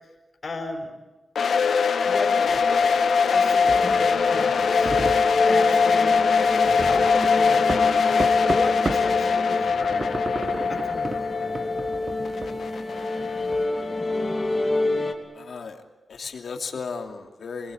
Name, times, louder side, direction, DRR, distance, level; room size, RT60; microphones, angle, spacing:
voice 1, 0.4-0.9 2.0-2.9 3.3-4.9 5.4-6.3 6.6-8.0 8.5-11.6, left 3 dB, 35° left, -1 dB, 5.0 m, -35 dB
sound 1, 1.3-14.2, left 5 dB, 90° left, 1.6 m, -22 dB
sound 2, 2.5-9.2 9.5-13.6, right 3 dB, 30° right, 1.2 m, -34 dB
sound 3, 3.6-15.1, left 2 dB, 20° left, 2.8 m, -29 dB
voice 2, 15.3-15.8 16.1-17.7, left 5 dB, 70° left, 4 dB, 2.7 m, -35 dB
27.0 x 20.5 x 8.7 m, 1.2 s
wide cardioid pair, 170°, 0 cm